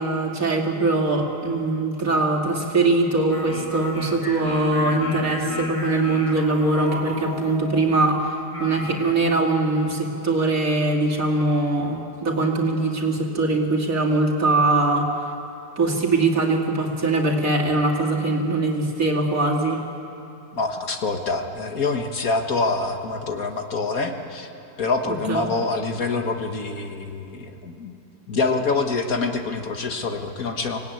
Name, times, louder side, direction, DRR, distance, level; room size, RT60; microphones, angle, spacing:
voice 1, 0.0-8.3 8.6-15.1 15.8-19.8 25.3-25.5, right 2 dB, 55° right, -1 dB, 3.1 m, -22 dB
sound 1, 3.3-9.1, left 1 dB, 20° left, 2.0 m, -32 dB
voice 2, 20.5-24.5 24.8-28.0 28.3-30.8, left 3 dB, 60° left, 4 dB, 2.0 m, -26 dB
25.0 x 19.0 x 9.4 m, 2.7 s
omnidirectional pair, 1.7 m